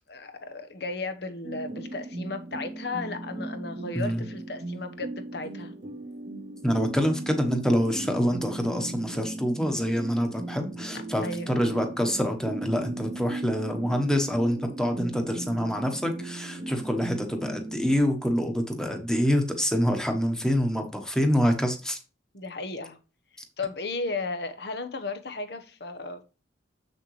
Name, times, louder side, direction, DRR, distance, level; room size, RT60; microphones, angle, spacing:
voice 1, 0.1-5.7 11.2-11.5 22.3-23.0 23.3-26.2, left 3 dB, 55° left, 1.0 m, -35 dB
sound 1, 1.4-18.0, right 2 dB, 45° right, 1.1 m, -37 dB
voice 2, 6.6-22.0, equal, 5° left, 1.2 m, -26 dB
7.3 x 6.5 x 3.2 m
head